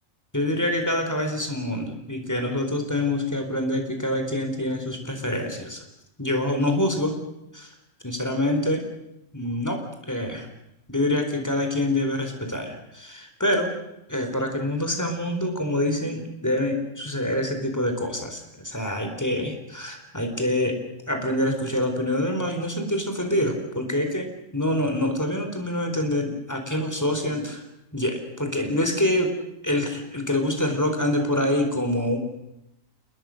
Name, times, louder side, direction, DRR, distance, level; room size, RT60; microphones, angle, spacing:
voice 1, 0.3-5.8 6.2-7.1 7.5-7.7 8.0-8.8 9.3-9.8 10.1-10.5 10.9-13.7 14.1-20.8 21.1-24.3 24.5-27.6 27.9-29.3 29.6-32.2, left 1 dB, 15° left, 5 dB, 4.2 m, -26 dB
29.0 x 20.0 x 6.6 m, 0.89 s
omnidirectional pair, 1.3 m